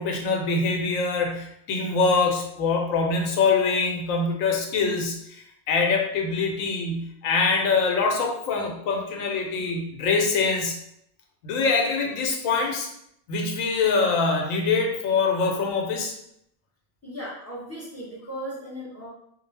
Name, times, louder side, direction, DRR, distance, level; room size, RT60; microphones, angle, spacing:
voice 1, 0.0-10.8 11.4-12.9 13.3-16.1, left 4 dB, 85° left, 2 dB, 1.0 m, -24 dB
voice 2, 17.0-19.1, equal, 25° left, -7 dB, 0.3 m, -36 dB
2.3 x 2.1 x 3.2 m, 0.75 s
omnidirectional pair, 1.4 m